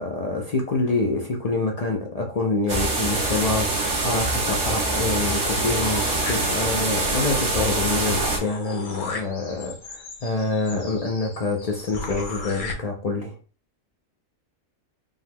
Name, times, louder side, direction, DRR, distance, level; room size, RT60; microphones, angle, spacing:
voice 1, 0.0-13.3, left 3 dB, 65° left, 0.3 m, -26 dB
sound 1, 2.7-8.4, right 2 dB, 60° right, 1.6 m, -24 dB
sound 2, 5.2-6.9 7.3-7.4 7.6-12.7, left 4 dB, 45° left, 0.9 m, -37 dB
5.3 x 3.5 x 2.2 m
omnidirectional pair, 1.5 m